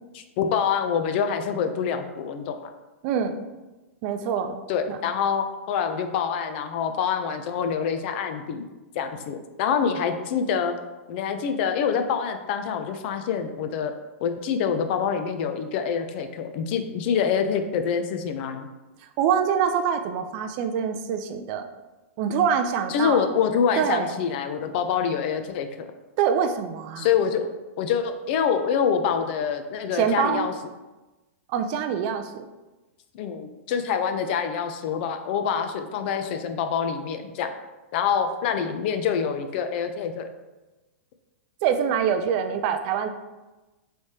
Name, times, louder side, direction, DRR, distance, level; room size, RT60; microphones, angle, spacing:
voice 1, 0.1-2.7 4.7-8.7 9.0-10.8 11.1-13.9 14.2-18.7 22.9-25.9 27.0-27.5 27.8-30.5 33.1-37.5 37.9-40.3, left 7 dB, 50° left, 7 dB, 0.4 m, -26 dB
voice 2, 3.0-3.4 4.0-4.6 4.9-5.0 19.2-21.6 22.2-23.2 23.8-24.1 26.2-27.1 29.9-30.5 31.5-32.5 41.6-43.1, right 7 dB, 45° right, 8 dB, 0.3 m, -25 dB
3.2 x 3.1 x 2.8 m, 1.1 s
hypercardioid pair, 115°, 7 cm